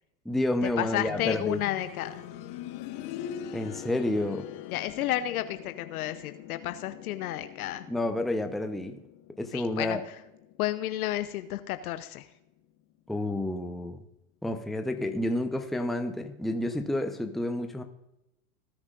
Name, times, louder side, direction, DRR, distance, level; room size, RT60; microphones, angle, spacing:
voice 1, 0.2-1.6 3.5-4.5 7.9-9.0 9.4-10.0 13.1-14.0 14.4-17.8, left 1 dB, ahead, 6 dB, 0.8 m, -30 dB
voice 2, 0.8-2.2 4.7-7.8 9.5-10.0 10.6-12.3, left 13 dB, 75° left, 11 dB, 0.8 m, -31 dB
sound 1, 1.1-11.8 12.1-12.2 13.1-13.2, left 10 dB, 45° left, 1.2 m, -43 dB
18.5 x 9.6 x 2.5 m, 0.88 s
hypercardioid pair, 100°, 44 cm